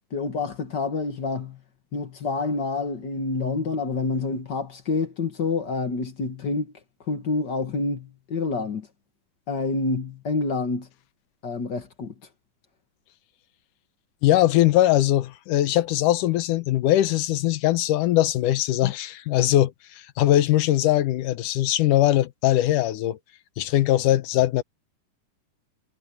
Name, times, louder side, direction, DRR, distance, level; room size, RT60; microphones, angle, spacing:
voice 1, 0.1-1.6 1.9-6.7 7.1-8.9 9.5-10.9 11.4-12.1 18.8-18.9, left 3 dB, 50° left, 1.4 m, -28 dB
voice 2, 14.2-23.2 23.6-24.6, left 14 dB, 75° left, 2.4 m, -21 dB
omnidirectional pair, 3.9 m